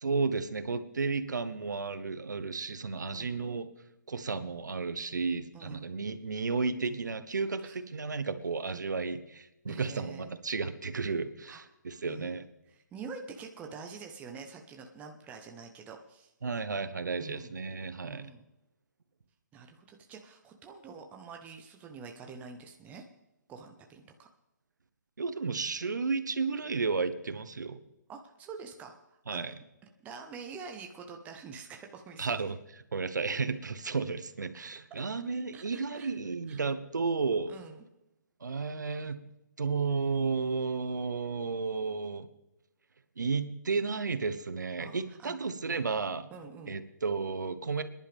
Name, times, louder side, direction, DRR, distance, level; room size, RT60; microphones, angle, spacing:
voice 1, 0.0-3.7 4.1-12.5 16.4-18.3 25.2-27.8 29.3-29.5 32.2-37.5 38.4-39.3 39.6-42.3 43.2-46.3 46.7-47.8, right 4 dB, 75° right, 12 dB, 1.2 m, -33 dB
voice 2, 9.7-10.3 11.5-11.6 12.0-16.3 17.2-17.6 18.0-18.5 19.5-23.0 23.5-24.3 28.1-29.5 30.0-32.5 35.5-36.1 36.5-36.6 37.5-37.8 44.8-45.4 46.3-46.8, right 5 dB, 15° right, 3 dB, 1.1 m, -46 dB
23.0 x 11.0 x 3.6 m, 0.90 s
figure-of-eight pair, 140°, 10 cm